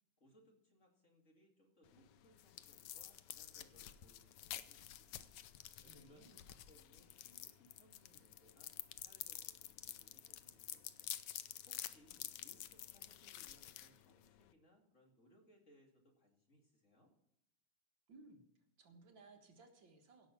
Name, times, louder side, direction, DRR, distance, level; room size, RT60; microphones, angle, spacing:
voice 1, 0.2-5.3 5.7-8.7 9.0-17.1, equal, 35° left, 1 dB, 2.6 m, -69 dB
sound 1, 1.9-14.5, left 12 dB, 70° left, 1.1 m, -50 dB
voice 2, 5.7-6.4 18.1-18.4 18.8-20.3, right 3 dB, 65° right, 3 dB, 2.2 m, -61 dB
17.0 x 6.3 x 5.9 m, 0.77 s
omnidirectional pair, 2.3 m